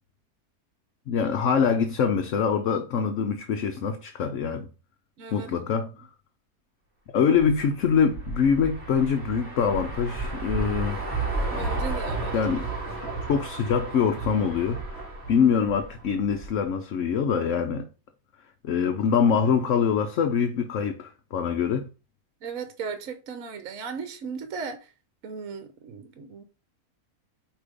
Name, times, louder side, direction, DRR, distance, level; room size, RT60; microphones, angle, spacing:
voice 1, 1.1-4.7 5.3-6.1 7.1-11.0 12.3-12.7 13.3-15.0 15.3-17.9 18.6-21.9, left 6 dB, 65° left, 1.0 m, -24 dB
voice 2, 5.2-5.5 5.8-5.9 11.5-12.4 19.5-19.6 22.4-24.9 25.2-26.4, right 5 dB, 65° right, 1.2 m, -36 dB
sound 1, 7.4-16.6, right 3 dB, 5° left, 3.0 m, -33 dB
8.5 x 3.0 x 5.1 m
omnidirectional pair, 1.6 m